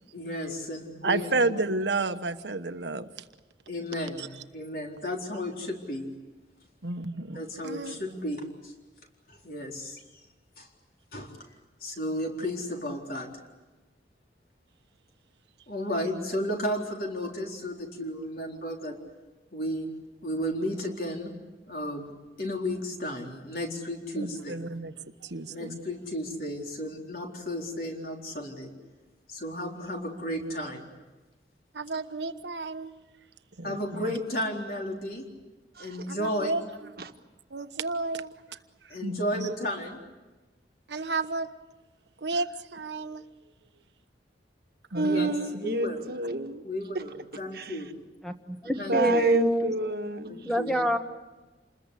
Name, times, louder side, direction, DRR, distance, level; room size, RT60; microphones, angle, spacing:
voice 1, 0.1-1.3 3.7-6.1 7.3-8.7 9.3-10.0 10.6-10.7 11.1-11.3 11.8-13.3 15.7-18.9 19.5-19.9 20.2-21.3 21.7-22.1 22.4-24.6 25.5-28.7 29.3-30.9 33.6-35.3 35.8-36.5 38.9-40.0 45.0-45.3 45.6-46.1 46.6-47.9 48.8-49.3 50.3-50.8, equal, 55° left, 4.1 m, -33 dB
voice 2, 1.0-3.1 4.2-4.4 6.8-7.9 24.2-25.8 31.7-32.9 33.6-34.2 36.1-36.9 37.5-38.6 38.8-39.5 40.9-41.5 42.2-43.2 44.9-45.6, right 3 dB, 80° right, 1.2 m, -32 dB
voice 3, 44.9-46.6 46.9-47.0 47.5-47.8 48.7-50.4, right 1 dB, 60° right, 1.5 m, -28 dB
voice 4, 48.2-49.7 50.4-51.0, right 1 dB, ahead, 1.2 m, -27 dB
28.5 x 21.0 x 8.4 m
head